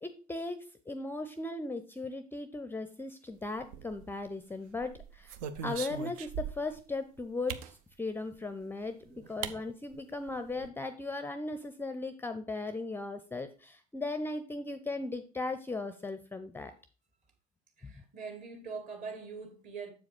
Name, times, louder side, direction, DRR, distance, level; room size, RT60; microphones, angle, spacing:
voice 1, 0.0-5.3 5.6-16.7 17.8-17.9, left 2 dB, 10° left, 0.6 m, -37 dB
sound 1, 3.6-4.3 4.8-6.8 7.5-7.7 8.8-8.9 9.4-9.6 9.9-10.0 10.3-10.7, right 8 dB, 60° right, 0.6 m, -40 dB
voice 2, 17.8-19.9, right 5 dB, 40° right, 2.2 m, -43 dB
7.5 x 4.8 x 5.0 m
figure-of-eight pair, 60°, 20 cm